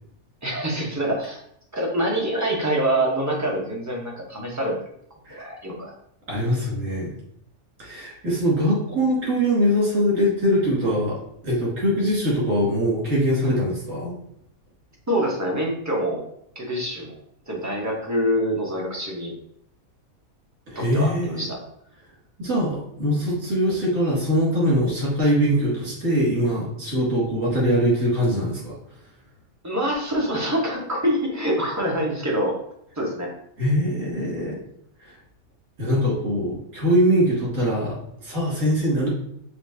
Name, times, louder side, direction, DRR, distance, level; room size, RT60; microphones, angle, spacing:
voice 1, 0.4-1.4 1.7-4.7 5.3-5.9 15.1-16.3 16.5-17.2 17.5-19.3 20.7-21.6 29.6-32.5 33.0-33.3, right 1 dB, 15° right, -3 dB, 0.7 m, -25 dB
voice 2, 6.3-7.1 7.8-14.1 20.7-21.5 22.4-28.8 33.6-34.6 35.0-35.2 35.8-39.1, equal, 60° right, -6 dB, 2.4 m, -22 dB
5.3 x 3.2 x 2.7 m, 0.70 s
omnidirectional pair, 1.5 m